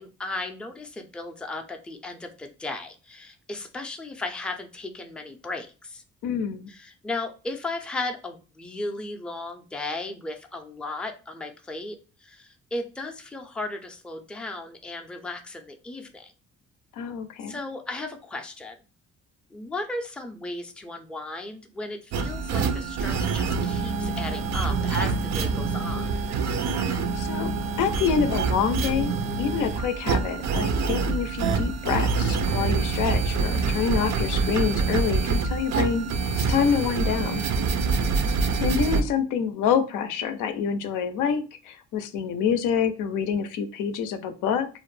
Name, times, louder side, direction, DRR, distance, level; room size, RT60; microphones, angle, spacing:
voice 1, 0.0-6.0 6.7-12.0 12.2-16.3 17.5-18.8 19.5-26.1 37.8-38.3, left 2 dB, 5° left, 4 dB, 0.3 m, -35 dB
voice 2, 6.2-6.7 16.9-17.6 26.7-27.5 27.8-29.1 29.4-37.5 38.6-44.7, left 7 dB, 90° left, 9 dB, 0.5 m, -27 dB
sound 1, 22.1-39.0, right 4 dB, 65° right, 0.4 m, -26 dB
2.5 x 2.0 x 3.1 m, 0.34 s
cardioid pair, 90°, 30 cm